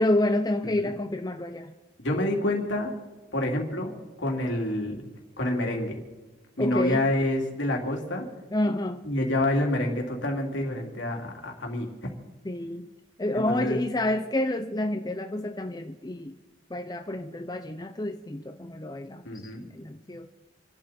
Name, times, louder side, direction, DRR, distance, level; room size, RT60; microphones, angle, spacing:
voice 1, 0.0-1.7 6.6-7.1 8.5-9.0 12.4-12.9 13.2-16.4 16.7-19.2 19.7-20.3, left 1 dB, 20° left, 6 dB, 0.6 m, -28 dB
voice 2, 0.6-0.9 2.0-2.9 3.3-5.1 5.4-6.0 6.6-8.3 9.0-11.9 13.3-13.8 19.2-19.7, left 1 dB, 75° left, 1 dB, 3.0 m, -28 dB
27.5 x 12.0 x 4.3 m, 1.1 s
head